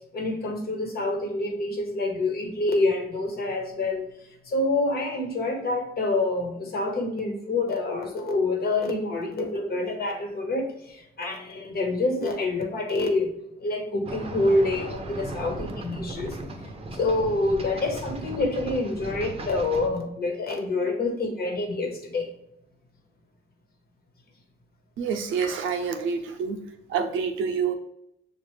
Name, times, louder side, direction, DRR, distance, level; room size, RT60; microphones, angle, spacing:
voice 1, 0.1-4.1 4.5-13.3 13.6-16.3 16.9-22.3, left 2 dB, 50° left, 3 dB, 1.2 m, -27 dB
sound 1, 14.0-19.9, right 1 dB, 30° right, 0.7 m, -37 dB
voice 2, 25.0-26.6 26.9-27.7, right 6 dB, 85° right, 6 dB, 0.7 m, -27 dB
6.6 x 2.5 x 3.2 m, 0.78 s
cardioid pair, 90°, 20 cm